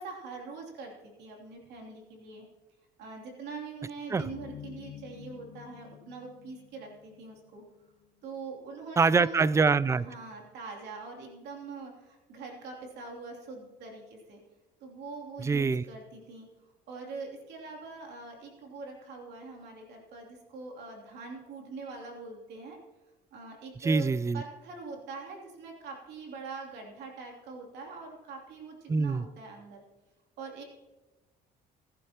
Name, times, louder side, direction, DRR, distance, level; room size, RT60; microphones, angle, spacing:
voice 1, 0.0-2.4 3.0-7.6 8.2-9.5 9.9-14.4 14.8-16.5 16.9-22.8 23.3-24.1 24.3-29.8 30.4-30.6, right 4 dB, 80° right, 0 dB, 3.0 m, -43 dB
sound 1, 4.2-7.7, left 10 dB, 70° left, 0.8 m, -48 dB
voice 2, 9.0-10.1 15.4-15.8 23.8-24.4 28.9-29.2, right 4 dB, 15° right, 19 dB, 0.3 m, -24 dB
20.0 x 11.0 x 3.0 m, 1.1 s
cardioid pair, 110°, 17 cm